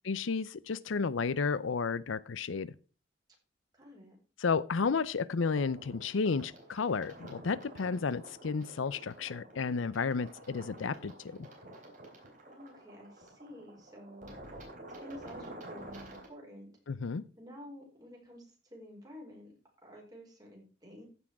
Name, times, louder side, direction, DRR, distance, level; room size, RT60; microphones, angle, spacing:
voice 1, 0.0-2.7 4.4-11.5 16.9-17.2, left 5 dB, 85° left, 0.6 m, -32 dB
voice 2, 3.7-4.2 12.5-14.4 15.0-16.7 17.4-19.5 19.8-21.1, equal, 20° right, 4.7 m, -50 dB
sound 1, 5.4-16.3, right 1 dB, 40° right, 3.9 m, -50 dB
15.0 x 6.2 x 4.8 m
head